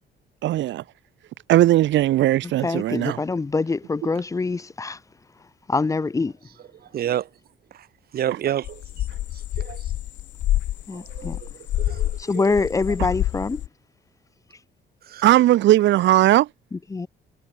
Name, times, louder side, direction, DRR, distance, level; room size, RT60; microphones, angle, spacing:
voice 1, 0.4-0.8 1.5-3.2 15.2-16.5, right 14 dB, 80° right, 2.2 m, -18 dB
voice 2, 2.4-5.0 5.7-6.3 10.9-11.4 12.2-13.6 16.7-17.1, left 3 dB, 15° left, 2.5 m, -25 dB
voice 3, 6.9-7.3 7.7-7.9 8.1-9.0 9.6-9.8 10.9-11.5 11.8-12.5 15.1-15.3, right 11 dB, 55° right, 4.7 m, -29 dB
sound 1, 8.6-12.2 12.5-13.7, left 13 dB, 75° left, 5.1 m, -27 dB
cardioid pair, 180°, 19 cm